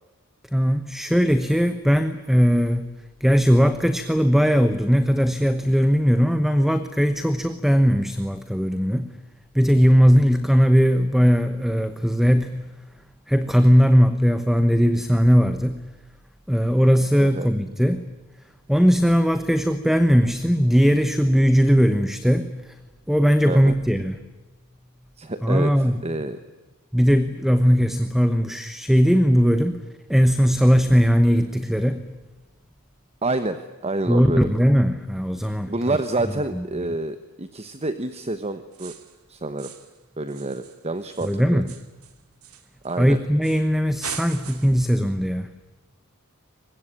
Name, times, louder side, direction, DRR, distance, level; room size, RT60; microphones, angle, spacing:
voice 1, 0.5-2.9 3.2-9.1 9.5-12.7 13.3-15.8 16.5-18.1 18.7-22.7 23.1-24.2 25.4-26.0 26.9-29.8 30.1-32.1 34.1-36.0 36.5-36.6 41.2-41.7 43.0-45.5, equal, ahead, 10 dB, 1.0 m, -19 dB
voice 2, 25.2-25.7 26.0-26.4 33.2-34.5 35.7-38.9 39.3-39.7 40.2-41.6 42.8-43.2, right 2 dB, 30° right, 10 dB, 1.2 m, -28 dB
sound 1, 38.7-39.2 39.6-40.0 40.3-43.0 43.4-43.7 44.0-44.9, right 8 dB, 90° right, 2.7 m, -40 dB
24.0 x 21.0 x 9.9 m, 1.1 s
head